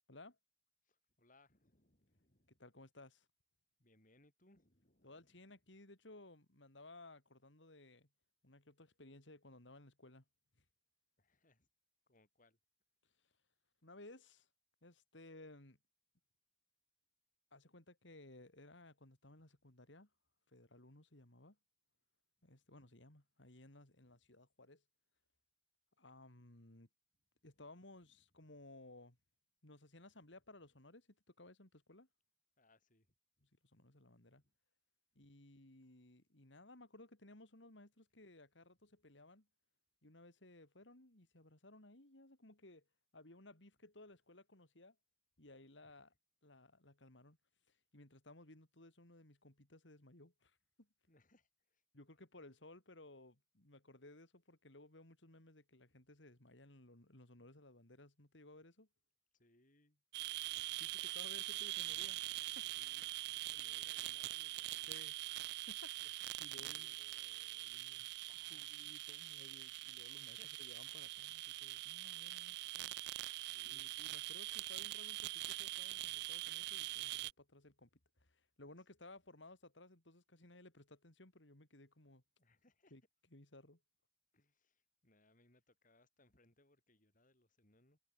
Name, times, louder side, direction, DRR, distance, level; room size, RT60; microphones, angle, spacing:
voice 1, 0.8-2.6 3.8-5.3 11.2-11.7 12.1-12.6 32.6-33.5 34.2-34.5 35.1-35.2 45.8-46.0 51.1-51.8 59.3-60.0 62.7-63.1 63.5-65.1 66.0-66.1 66.5-68.8 70.2-70.6 73.5-74.0 82.4-82.9 84.3-88.0, left 2 dB, 45° left, 6.7 m, -72 dB
voice 2, 2.5-3.3 5.0-8.1 8.4-10.2 13.8-14.5 14.8-15.8 17.5-20.1 20.5-21.6 22.4-24.8 26.0-26.9 27.4-29.2 29.6-32.1 33.4-34.4 35.2-39.5 40.0-42.9 43.1-45.0 45.4-46.1 46.4-47.4 47.7-50.9 51.9-58.9 60.7-62.9 64.9-65.2 65.7-67.0 68.5-72.9 73.6-77.9 78.2-82.2 82.9-83.0 83.3-83.8, left 2 dB, 70° left, 3.6 m, -59 dB
sound 1, 60.1-77.3, right 17 dB, 60° right, 0.4 m, -44 dB
head